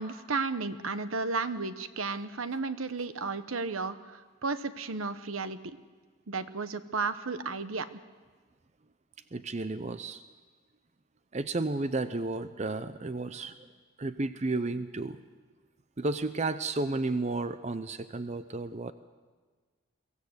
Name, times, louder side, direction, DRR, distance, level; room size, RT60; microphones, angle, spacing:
voice 1, 0.0-5.8 6.3-7.9, right 4 dB, 75° right, 12 dB, 1.0 m, -33 dB
voice 2, 9.3-10.2 11.3-13.6 14.0-15.2 16.0-18.9, right 2 dB, 30° right, 11 dB, 0.6 m, -32 dB
23.0 x 15.5 x 8.0 m, 1.4 s
head